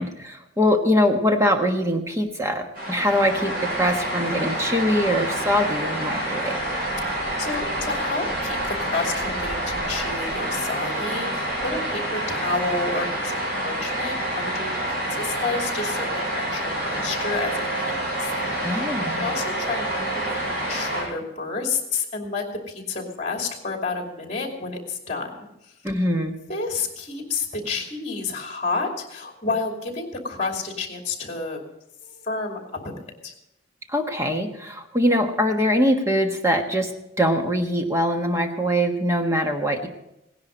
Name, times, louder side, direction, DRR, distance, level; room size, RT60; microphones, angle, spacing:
voice 1, 0.0-6.6 18.6-19.3 25.8-26.3 33.9-36.9 37.2-39.9, equal, 15° right, 4 dB, 1.3 m, -23 dB
sound 1, 2.7-21.0, right 1 dB, 50° right, 7.5 m, -27 dB
voice 2, 7.1-14.7 15.1-18.9 19.1-25.7 26.5-31.6 32.0-32.9 33.2-33.3, left 4 dB, 35° left, 2 dB, 2.7 m, -30 dB
17.5 x 10.5 x 5.2 m, 0.86 s
head